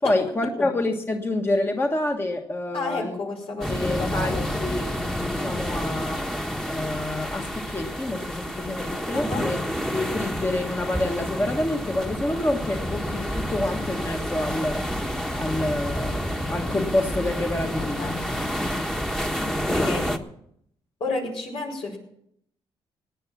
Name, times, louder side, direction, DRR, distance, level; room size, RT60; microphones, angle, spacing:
voice 1, 0.0-3.2 3.7-6.2 6.7-9.6 9.9-14.9 15.3-18.2 19.7-20.1, left 2 dB, 25° left, 3 dB, 1.5 m, -28 dB
voice 2, 2.7-4.5 9.1-9.5 17.7-18.5 19.6-20.1 21.0-22.0, left 3 dB, 70° left, 1 dB, 5.0 m, -31 dB
sound 1, 3.6-20.2, equal, 5° left, 1.3 m, -29 dB
18.0 x 9.9 x 6.1 m, 0.72 s
cardioid pair, 90°, 10 cm